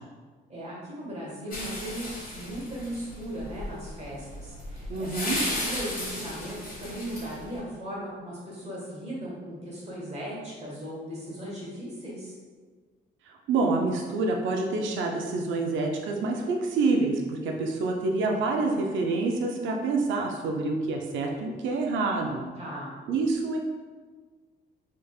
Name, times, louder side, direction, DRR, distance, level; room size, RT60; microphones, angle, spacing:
voice 1, 0.5-12.3 22.6-22.9, equal, 35° right, -6 dB, 1.5 m, -37 dB
sound 1, 1.5-7.6, left 1 dB, 45° left, 1.3 m, -35 dB
voice 2, 4.9-5.4 13.5-22.4 23.1-23.6, right 3 dB, 75° right, 1 dB, 0.4 m, -27 dB
3.3 x 3.2 x 2.3 m, 1.5 s
cardioid pair, 90°, 20 cm